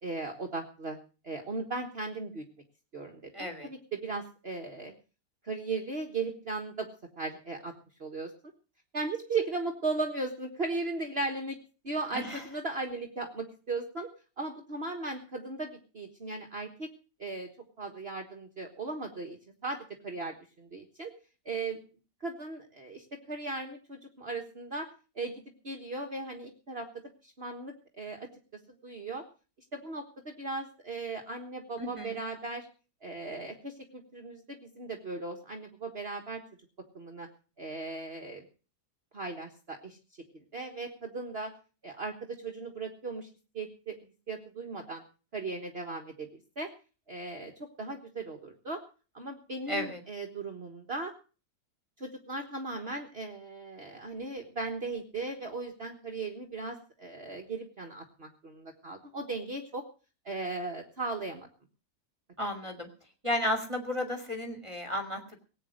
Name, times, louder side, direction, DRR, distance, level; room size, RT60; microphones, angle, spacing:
voice 1, 0.0-1.0 1.2-2.4 2.9-4.9 5.4-6.9 7.2-7.7 8.0-8.3 8.9-11.6 11.8-14.1 14.4-16.9 17.2-17.5 17.8-21.1 21.4-21.8 22.2-24.9 25.1-28.3 28.8-29.2 29.7-32.7 33.0-36.4 36.9-37.3 37.6-38.5 39.1-40.0 40.5-41.5 41.8-43.3 43.5-44.0 44.3-45.0 45.3-46.3 46.6-46.7 47.1-47.5 47.8-48.8 49.1-51.1 52.0-59.8 60.2-61.5, right 3 dB, 40° right, 3 dB, 1.7 m, -37 dB
voice 2, 3.3-3.7 12.1-12.4 31.8-32.1 49.7-50.0 62.4-62.9 63.2-65.4, left 1 dB, 20° right, 5 dB, 2.2 m, -33 dB
18.5 x 9.1 x 6.5 m, 0.36 s
omnidirectional pair, 1.7 m